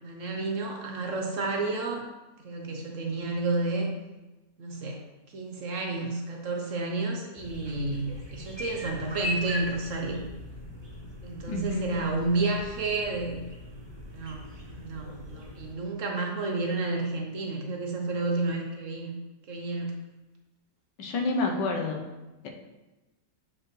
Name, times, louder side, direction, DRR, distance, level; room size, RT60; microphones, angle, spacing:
voice 1, 0.0-2.0 2.4-3.9 4.6-5.0 5.3-10.2 11.2-13.4 14.1-14.4 14.7-19.2 19.5-19.9, right 3 dB, 55° right, 0 dB, 1.0 m, -31 dB
sound 1, 7.4-15.7, left 1 dB, 25° right, 0.7 m, -40 dB
voice 2, 11.5-11.9 21.0-22.1, left 3 dB, 90° left, 2 dB, 1.5 m, -28 dB
7.5 x 4.6 x 3.2 m, 1.1 s
omnidirectional pair, 1.8 m